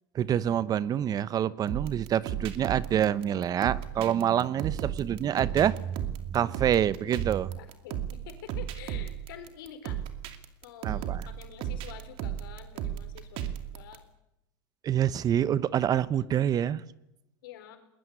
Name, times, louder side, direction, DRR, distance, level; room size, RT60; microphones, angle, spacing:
voice 1, 0.1-7.5 10.8-11.2 14.8-16.8, right 10 dB, 35° right, 18 dB, 0.9 m, -27 dB
sound 1, 1.7-14.0, right 10 dB, 55° right, 2.5 m, -35 dB
voice 2, 7.6-10.0 10.6-14.0 15.3-15.8 16.2-16.4 17.4-17.8, left 10 dB, 80° left, 8 dB, 4.3 m, -48 dB
21.5 x 20.5 x 9.5 m, 0.86 s
supercardioid pair, 110°, 11 cm